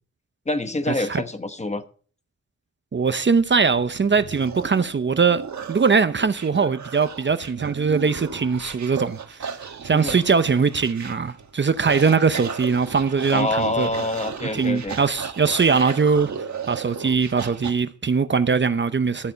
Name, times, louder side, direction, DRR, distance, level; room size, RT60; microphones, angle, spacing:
voice 1, 0.5-1.9 9.9-10.2 13.3-15.0, left 2 dB, 25° left, 1.0 m, -26 dB
voice 2, 2.9-5.4 5.7-9.5 9.8-13.9 14.5-16.3 16.7-19.3, right 5 dB, 40° right, 0.7 m, -21 dB
sound 1, 3.4-17.7, right 6 dB, 70° right, 1.4 m, -35 dB
13.0 x 8.4 x 5.4 m
wide cardioid pair, 125°, 29 cm